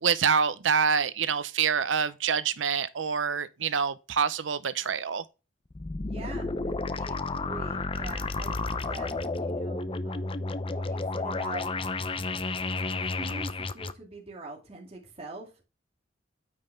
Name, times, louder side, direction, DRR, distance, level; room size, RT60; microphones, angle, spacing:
voice 1, 0.0-5.2, right 6 dB, 85° right, 0.7 m, -26 dB
sound 1, 5.7-13.9, left 3 dB, 30° left, 0.6 m, -32 dB
voice 2, 6.0-11.7 12.3-12.4 13.1-15.6, right 2 dB, 35° right, 2.4 m, -44 dB
9.2 x 5.6 x 3.4 m
head